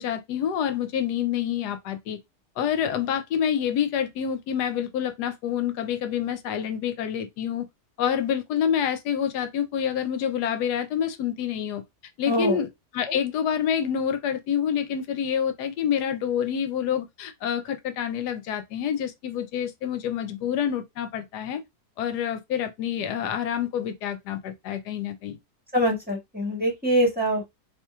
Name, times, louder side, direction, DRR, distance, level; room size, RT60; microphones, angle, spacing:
voice 1, 0.0-2.2 2.6-7.7 8.0-11.8 12.2-12.7 12.9-21.6 22.0-25.4, left 8 dB, 85° left, 1.2 m, -27 dB
voice 2, 12.3-12.6 25.7-27.5, equal, 5° right, 1.6 m, -24 dB
4.3 x 2.9 x 2.3 m
omnidirectional pair, 1.7 m